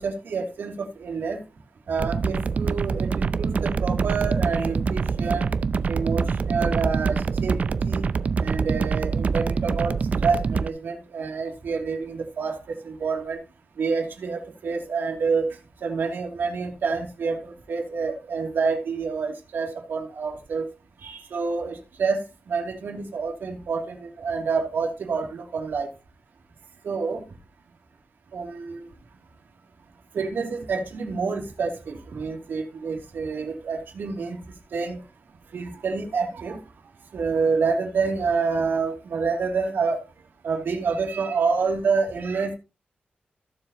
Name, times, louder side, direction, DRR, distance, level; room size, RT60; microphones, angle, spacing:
voice 1, 0.0-1.4 1.9-5.5 5.9-8.1 8.4-9.9 10.2-13.4 13.8-15.6 15.8-20.7 21.0-25.9 26.8-27.2 28.3-28.8 30.1-34.4 34.7-35.0 35.5-36.6 37.1-40.0 40.4-42.5, right 5 dB, 80° right, 2.8 m, -28 dB
sound 1, 2.0-10.7, right 5 dB, 45° right, 0.5 m, -25 dB
15.5 x 7.2 x 3.0 m
wide cardioid pair, 175°, 3 cm